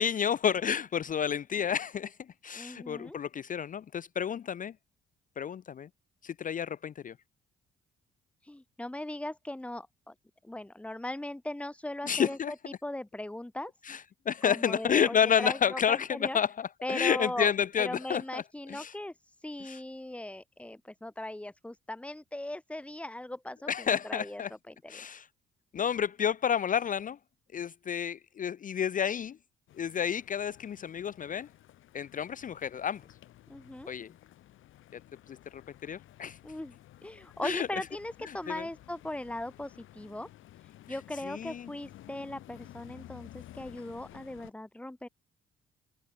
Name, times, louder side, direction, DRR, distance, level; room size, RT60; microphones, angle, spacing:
voice 1, 0.0-2.1 2.4-4.7 5.4-5.9 6.2-7.1 12.0-12.5 13.8-18.4 18.7-18.9 19.7-19.8 23.7-24.5 24.9-25.3 25.7-27.2 27.5-29.4 29.8-31.5 31.9-33.0 33.9-34.1 35.3-36.4 37.4-37.7 38.3-38.6 41.2-41.7, left 8 dB, 40° left, 0.6 m, -30 dB
voice 2, 2.5-3.2 8.4-10.1 10.4-12.4 12.7-13.7 14.4-16.4 16.8-17.5 17.8-24.4 24.7-25.2 33.5-33.9 36.4-36.8 37.0-40.3 40.6-45.1, left 1 dB, 5° left, 0.9 m, -39 dB
sound 1, 29.7-44.5, left 14 dB, 85° left, 7.7 m, -54 dB
cardioid pair, 90°, 20 cm